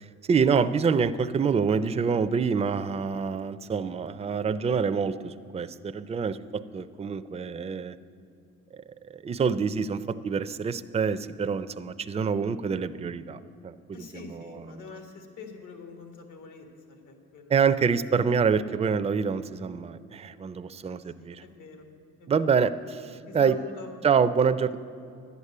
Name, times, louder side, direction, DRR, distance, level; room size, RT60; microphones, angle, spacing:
voice 1, 0.3-8.0 8.7-8.8 9.1-13.7 14.1-14.7 17.5-21.4 22.3-23.6 24.0-24.8, right 6 dB, 20° right, 12 dB, 0.4 m, -26 dB
voice 2, 13.9-17.7 20.8-21.9 22.2-22.5 23.3-23.9, left 5 dB, 80° left, 5 dB, 1.7 m, -45 dB
11.0 x 8.2 x 8.5 m, 2.5 s
cardioid pair, 90°, 30 cm